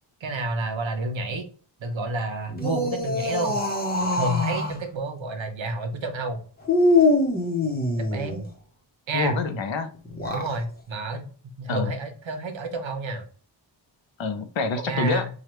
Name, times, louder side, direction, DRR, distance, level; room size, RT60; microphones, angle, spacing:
voice 1, 0.2-1.5 1.8-3.6 4.1-6.4 8.1-8.5 9.1-9.4 10.3-11.3 11.6-13.3 14.8-15.3, right 2 dB, 75° right, 6 dB, 0.9 m, -29 dB
sound 1, 2.5-4.8 6.7-8.5 10.1-10.6, left 2 dB, 20° left, 0.9 m, -23 dB
voice 2, 9.1-9.9 11.7-11.9 14.2-15.3, left 4 dB, 70° left, 8 dB, 0.7 m, -26 dB
4.8 x 2.4 x 3.0 m, 0.41 s
wide cardioid pair, 115°, 47 cm